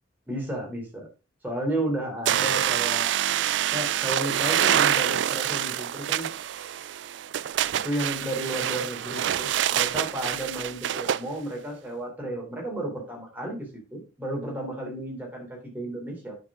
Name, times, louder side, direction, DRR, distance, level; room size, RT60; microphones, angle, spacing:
voice 1, 0.3-1.1 1.4-3.2 3.7-6.3 7.7-16.4, right 1 dB, 10° right, -1 dB, 3.3 m, -33 dB
sound 1, 2.3-11.2, right 11 dB, 70° right, 0.3 m, -26 dB
10.0 x 6.1 x 3.7 m, 0.31 s
head